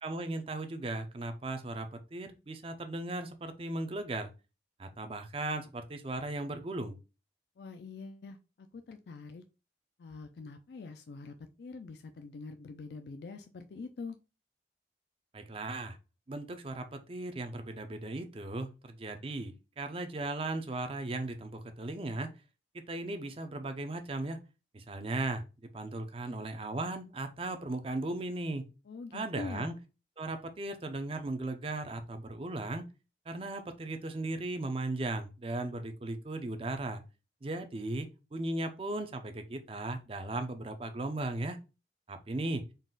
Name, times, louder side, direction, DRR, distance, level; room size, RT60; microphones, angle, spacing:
voice 1, 0.0-4.3 4.8-6.9 15.3-16.0 16.3-22.3 22.9-24.4 24.7-25.4 25.7-28.7 29.1-29.7 30.2-32.8 33.3-37.0 37.4-41.6 42.1-42.6, right 2 dB, 30° right, 7 dB, 0.5 m, -37 dB
voice 2, 7.6-9.4 10.0-14.2 28.9-29.8, left 4 dB, 65° left, 7 dB, 0.4 m, -45 dB
4.0 x 2.4 x 3.7 m, 0.30 s
head